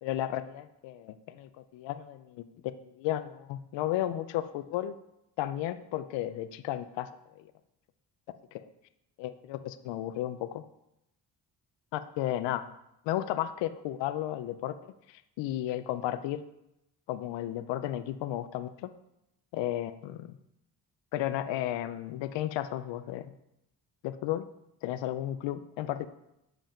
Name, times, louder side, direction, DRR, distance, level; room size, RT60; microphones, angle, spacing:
voice 1, 0.0-4.9 5.4-7.1 8.5-8.7 9.2-10.6 11.9-12.6 13.1-16.4 17.1-18.9 19.5-20.4 21.1-23.3 24.0-24.4 24.8-26.1, left 13 dB, 90° left, 11 dB, 0.5 m, -33 dB
7.6 x 5.3 x 5.0 m, 0.83 s
cardioid pair, 70°, 42 cm